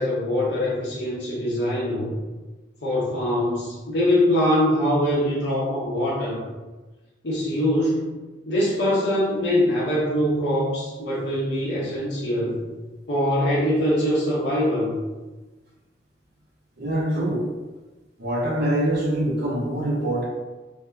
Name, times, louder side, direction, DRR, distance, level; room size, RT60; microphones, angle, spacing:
voice 1, 0.0-2.1 2.8-6.4 7.2-8.1 8.5-12.6 13.1-15.0, left 1 dB, 70° left, -7 dB, 0.8 m, -23 dB
voice 2, 16.8-17.4 18.2-20.2, right 1 dB, 60° right, -6 dB, 0.9 m, -24 dB
2.7 x 2.6 x 3.3 m, 1.2 s
head